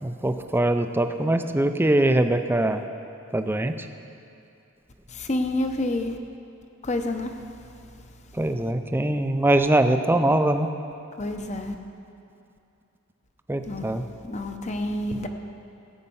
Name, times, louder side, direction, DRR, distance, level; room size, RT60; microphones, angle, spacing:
voice 1, 0.0-2.8 3.3-3.7 8.4-10.7 13.5-14.0, right 1 dB, 10° right, 8 dB, 0.4 m, -22 dB
voice 2, 5.1-6.2 6.8-7.5 11.2-11.7 13.6-13.9 14.2-15.3, left 1 dB, 30° left, 5 dB, 0.8 m, -28 dB
15.0 x 8.7 x 5.5 m, 2.6 s
head